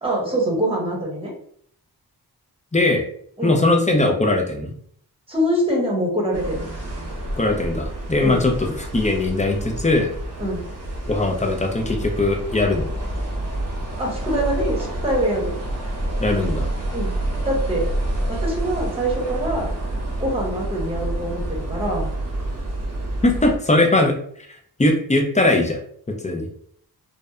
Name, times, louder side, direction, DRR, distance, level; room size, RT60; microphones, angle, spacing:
voice 1, 0.0-1.3 3.4-3.6 5.3-6.7 8.2-8.4 10.4-10.6 14.0-15.6 16.9-17.1 17.4-17.9 18.3-19.7 20.2-22.1, right 1 dB, 15° right, -3 dB, 1.0 m, -24 dB
voice 2, 2.7-3.1 3.4-4.7 7.4-10.1 11.1-12.9 16.2-16.7 23.2-25.8 26.2-26.5, left 2 dB, 20° left, 2 dB, 0.4 m, -20 dB
sound 1, 6.3-23.6, right 1 dB, 40° right, 0.8 m, -28 dB
2.6 x 2.1 x 2.3 m, 0.62 s
cardioid pair, 60°, 40 cm